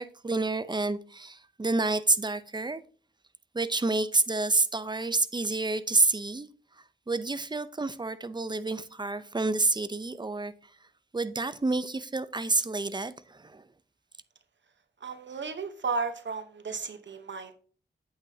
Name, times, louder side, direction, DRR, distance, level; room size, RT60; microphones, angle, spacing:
voice 1, 0.0-2.8 3.5-6.5 7.1-10.5 11.1-13.6, right 3 dB, 20° right, 0.6 m, -28 dB
voice 2, 15.0-17.5, right 4 dB, 65° right, 1.0 m, -34 dB
8.6 x 8.5 x 2.8 m
wide cardioid pair, 80°, 20 cm